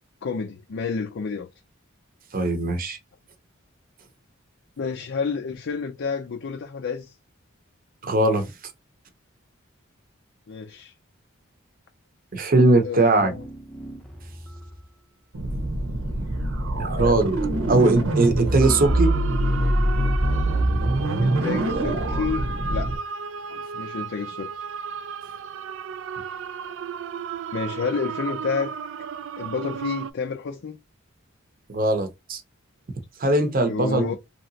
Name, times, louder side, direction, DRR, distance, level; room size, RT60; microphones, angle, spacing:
voice 1, 0.2-1.5 4.8-7.1 10.5-10.9 12.8-13.5 21.2-22.9 23.5-24.5 27.5-28.7 29.4-30.8 33.7-34.2, left 5 dB, 60° left, 0.4 m, -30 dB
voice 2, 2.3-3.0 8.0-8.5 12.3-13.3 16.8-17.4 17.7-19.1 31.7-32.4 33.2-34.2, right 2 dB, 45° right, 0.7 m, -20 dB
sound 1, 13.2-15.0, right 1 dB, 5° left, 0.6 m, -42 dB
sound 2, 15.3-23.0, right 1 dB, 85° right, 1.0 m, -24 dB
sound 3, 18.6-30.1, right 7 dB, 65° right, 0.3 m, -34 dB
3.1 x 2.8 x 2.7 m
head